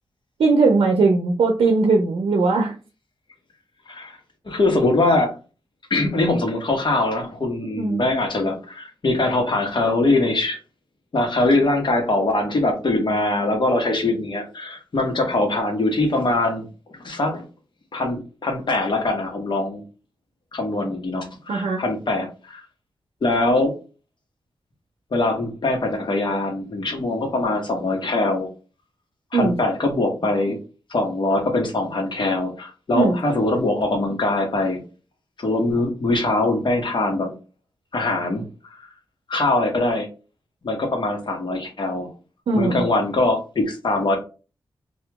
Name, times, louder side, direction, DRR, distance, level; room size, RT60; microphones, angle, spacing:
voice 1, 0.4-2.7 7.8-8.0 21.5-21.8 29.3-29.5 32.9-33.2 42.5-42.8, right 3 dB, 90° right, 1 dB, 0.5 m, -19 dB
voice 2, 4.4-5.3 5.9-10.6 11.1-16.7 17.0-17.4 17.9-19.8 20.5-22.6 23.2-23.7 25.1-28.5 29.3-30.6 30.9-34.8 35.4-37.3 37.9-38.5 38.8-38.9 39.3-40.1 40.6-42.1 42.5-44.2, left 2 dB, 55° left, 3 dB, 1.0 m, -22 dB
2.9 x 2.4 x 3.4 m, 0.34 s
cardioid pair, 70°, 10 cm